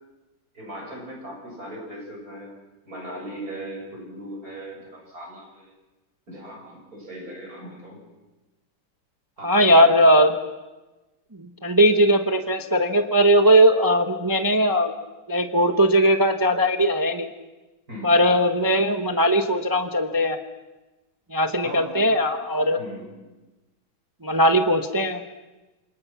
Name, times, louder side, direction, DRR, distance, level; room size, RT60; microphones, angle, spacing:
voice 1, 0.5-2.6 2.9-5.7 6.3-8.0 9.4-9.9 17.9-18.2 21.6-22.0 22.8-23.1, right 1 dB, 45° right, -1 dB, 8.0 m, -38 dB
voice 2, 9.4-10.4 11.4-14.9 15.3-17.3 18.0-20.4 21.3-22.8 24.2-25.2, equal, 15° right, 7 dB, 0.8 m, -19 dB
28.5 x 26.0 x 6.0 m, 1.1 s
omnidirectional pair, 2.1 m